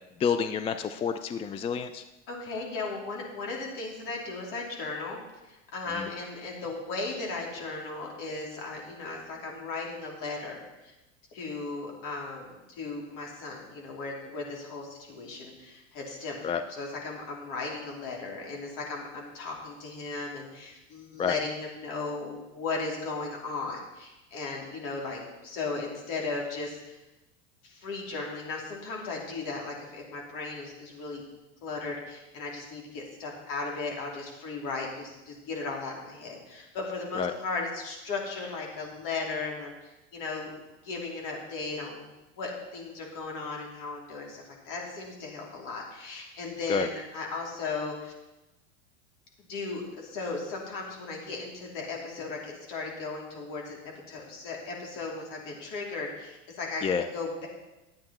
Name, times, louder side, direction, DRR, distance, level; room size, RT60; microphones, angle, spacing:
voice 1, 0.2-2.0 6.0-6.1 16.4-16.6 21.2-21.3 37.2-37.3 46.7-46.9 56.8-57.0, left 7 dB, 15° left, 9 dB, 0.3 m, -28 dB
voice 2, 2.3-5.2 5.5-10.9 11.3-27.0 27.6-31.3 31.6-40.5 40.8-42.1 42.4-48.1 49.4-53.8 54.1-56.8 57.1-57.5, left 3 dB, 55° left, -1 dB, 3.2 m, -36 dB
11.5 x 8.7 x 4.3 m, 1.0 s
hypercardioid pair, 95°, 38 cm